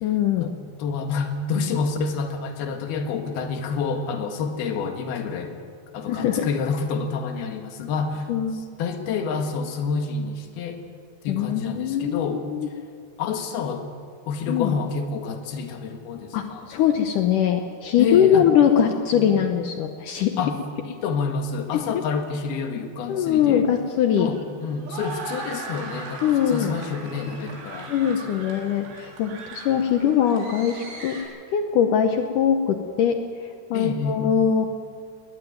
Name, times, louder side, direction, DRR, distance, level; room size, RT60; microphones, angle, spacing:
voice 1, 0.0-0.5 6.1-6.5 8.3-8.6 11.3-12.7 14.5-14.8 16.3-20.3 21.7-22.0 23.1-24.3 26.2-26.7 27.9-31.2 31.5-33.2 33.7-34.7, left 8 dB, 90° left, 5 dB, 1.8 m, -22 dB
voice 2, 0.8-5.6 5.9-8.3 8.8-10.8 11.2-12.4 13.2-13.9 14.3-16.7 18.0-18.5 18.8-19.3 20.4-20.6 20.9-23.7 24.2-27.9 28.2-28.5 33.7-34.2, left 5 dB, 65° left, 5 dB, 3.4 m, -28 dB
sound 1, 23.2-31.2, right 3 dB, 80° right, 6.1 m, -39 dB
21.0 x 19.0 x 9.4 m, 2.2 s
omnidirectional pair, 5.3 m